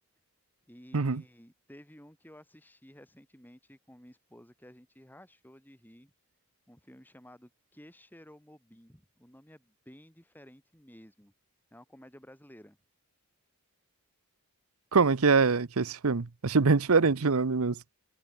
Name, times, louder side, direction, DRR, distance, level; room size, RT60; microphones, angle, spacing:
voice 1, 0.7-6.1 6.7-11.3 11.7-12.8, equal, 10° left, 6.1 m, -54 dB
voice 2, 14.9-17.8, right 4 dB, 75° right, 0.8 m, -24 dB
head